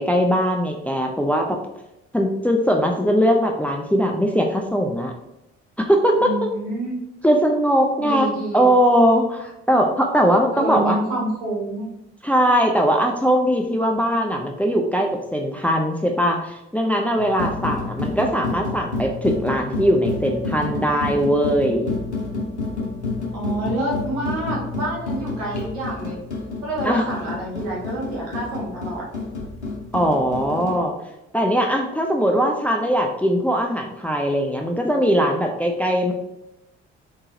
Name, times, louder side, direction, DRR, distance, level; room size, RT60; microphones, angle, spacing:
voice 1, 0.0-1.6 2.1-5.1 5.8-6.3 7.2-11.0 12.2-22.0 26.8-27.0 29.9-30.9 31.3-36.1, equal, 5° left, 2 dB, 0.4 m, -20 dB
voice 2, 6.2-7.0 8.0-8.7 10.5-11.9 23.3-26.2 26.6-29.0, right 1 dB, 75° right, -5 dB, 1.4 m, -28 dB
sound 1, 17.2-30.8, left 3 dB, 90° left, 0.7 m, -29 dB
4.0 x 3.7 x 2.6 m, 0.90 s
figure-of-eight pair, 50°, 33 cm